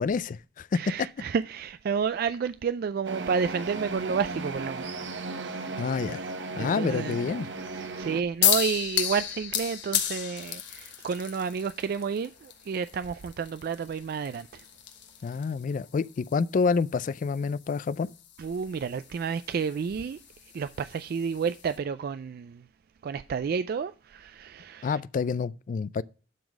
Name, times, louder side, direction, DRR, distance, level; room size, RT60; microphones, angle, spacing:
voice 1, 0.0-0.8 5.8-6.2 6.6-7.5 15.2-18.1 24.8-26.0, left 5 dB, 45° left, 0.3 m, -28 dB
voice 2, 0.7-4.8 6.6-7.2 7.7-14.6 18.4-20.2 20.5-22.6 23.0-25.0, right 6 dB, 55° right, 0.3 m, -30 dB
sound 1, 3.0-8.2, right 3 dB, 75° right, 1.2 m, -36 dB
sound 2, 8.4-21.8, left 10 dB, 70° left, 1.4 m, -34 dB
11.5 x 4.0 x 6.2 m
head